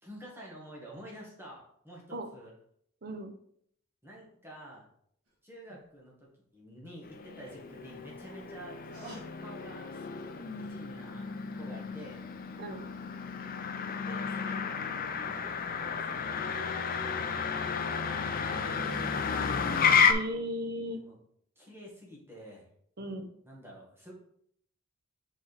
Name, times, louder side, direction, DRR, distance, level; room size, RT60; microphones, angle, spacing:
voice 1, 0.0-2.5 4.0-4.8 5.4-6.1 6.5-8.8 9.4-10.1 10.5-12.2 14.0-17.4 17.7-18.9 19.2-19.7 20.9-21.2 21.5-22.7 23.4-24.1, equal, 10° right, -3 dB, 1.7 m, -49 dB
voice 2, 3.0-3.3 12.6-12.8 18.8-19.0 20.1-21.0 23.0-23.3, equal, 45° right, 5 dB, 0.8 m, -36 dB
sound 1, 5.3-5.4 5.7-5.8 7.7-10.8 11.2-11.3, right 2 dB, 85° right, 2.2 m, -52 dB
Motor vehicle (road), 7.0-20.1, left 6 dB, 40° left, 0.5 m, -32 dB
4.9 x 4.9 x 4.1 m, 0.67 s
head